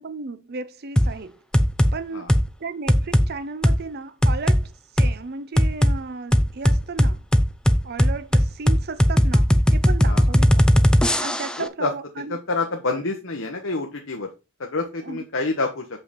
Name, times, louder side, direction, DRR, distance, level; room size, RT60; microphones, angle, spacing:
voice 1, 0.0-1.4 1.9-2.3 2.6-7.2 7.8-12.4 15.0-15.2, right 4 dB, 50° right, 0.6 m, -34 dB
sound 1, 1.0-1.1 1.5-1.9 2.3-2.5 2.9-3.3 3.6-3.8 4.2-4.6 5.0-5.1 5.6-6.0 6.3-11.6, equal, 5° left, 0.5 m, -17 dB
voice 2, 11.6-11.9 12.3-14.3 14.6-15.9, left 3 dB, 70° left, 1.1 m, -27 dB
7.0 x 5.6 x 4.1 m
head